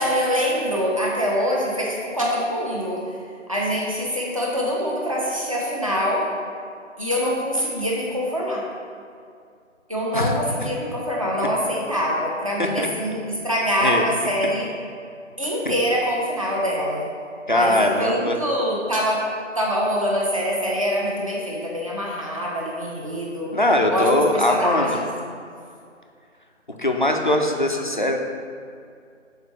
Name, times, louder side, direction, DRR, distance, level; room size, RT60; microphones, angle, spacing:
voice 1, 0.0-3.0 3.5-6.3 7.0-8.6 9.9-14.7 15.4-17.1 17.5-19.3 19.6-23.6 23.9-25.1, equal, 25° right, -4 dB, 0.7 m, -24 dB
voice 2, 10.1-10.7 12.6-12.9 13.8-14.1 15.7-15.8 17.5-18.4 23.5-25.0 26.8-28.2, left 1 dB, 40° left, 2 dB, 0.4 m, -21 dB
6.7 x 4.3 x 3.2 m, 2.3 s
figure-of-eight pair, 160°, 38 cm